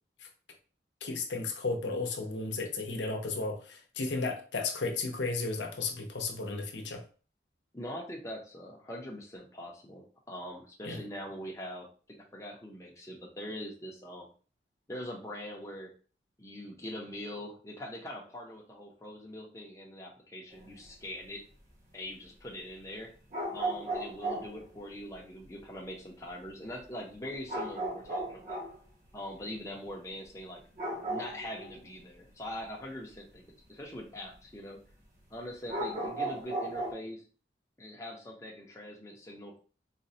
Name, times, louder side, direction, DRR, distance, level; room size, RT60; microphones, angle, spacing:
voice 1, 1.0-7.0 10.8-11.0, left 3 dB, 85° left, 3 dB, 0.6 m, -34 dB
voice 2, 7.7-11.9 12.2-14.3 14.9-15.9 16.4-21.4 21.9-23.1 23.5-28.6 29.1-30.6 31.0-34.8 35.3-37.2 37.8-39.6, left 1 dB, 15° left, -2 dB, 0.6 m, -42 dB
sound 1, 20.5-20.9 23.3-24.6 27.5-28.8 30.8-31.9 35.7-36.9, right 2 dB, 45° right, 1.1 m, -35 dB
4.1 x 2.2 x 2.7 m, 0.39 s
head